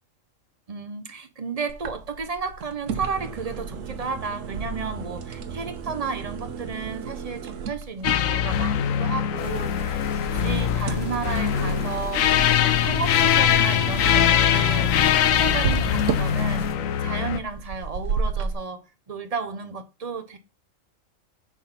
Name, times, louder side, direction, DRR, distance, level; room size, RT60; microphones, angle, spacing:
voice 1, 0.7-20.4, right 5 dB, 35° right, 0.7 m, -33 dB
sound 1, 1.7-18.5, right 5 dB, 75° right, 1.2 m, -33 dB
sound 2, 8.0-17.4, left 9 dB, 85° left, 1.0 m, -22 dB
sound 3, 9.4-16.7, left 3 dB, 55° left, 1.3 m, -36 dB
7.2 x 3.7 x 5.8 m
omnidirectional pair, 1.3 m